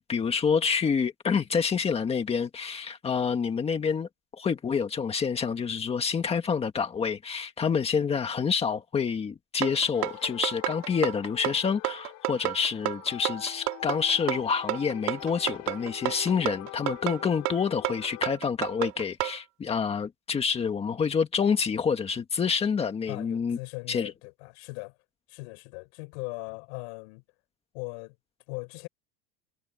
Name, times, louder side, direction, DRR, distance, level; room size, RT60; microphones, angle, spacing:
voice 1, 0.0-4.1 4.4-23.6 23.9-24.1, left 6 dB, 20° left, 1.7 m, -27 dB
sound 1, 9.6-19.4, right 20 dB, 55° right, 4.0 m, -31 dB
sound 2, 9.9-18.3, left 24 dB, 60° left, 6.8 m, -44 dB
voice 2, 23.1-24.9 25.3-27.2 27.7-28.1 28.5-28.9, left 33 dB, 80° left, 5.9 m, -39 dB
cardioid pair, 175°, 33 cm